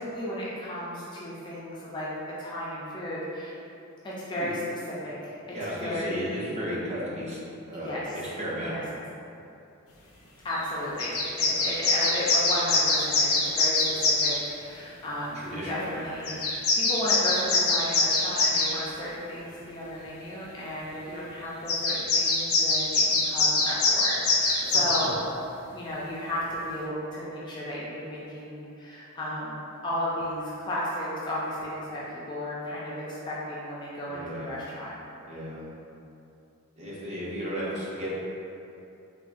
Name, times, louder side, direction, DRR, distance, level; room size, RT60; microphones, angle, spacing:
voice 1, 0.0-3.5 4.0-5.3 5.6-6.5 7.7-8.2 8.7-8.8 10.4-25.2 25.7-32.0 32.3-34.9, equal, 20° left, -7 dB, 0.3 m, -34 dB
voice 2, 5.5-7.4 7.7-8.8 11.4-11.7 15.3-16.4 24.7-24.8 34.1-34.5 35.3-35.6 36.8-38.1, equal, 30° right, -7 dB, 0.6 m, -34 dB
sound 1, 10.5-10.6 11.0-14.4 16.2-18.7 21.7-25.1, left 3 dB, 90° left, 0.5 m, -23 dB
3.5 x 2.1 x 2.4 m, 2.7 s
head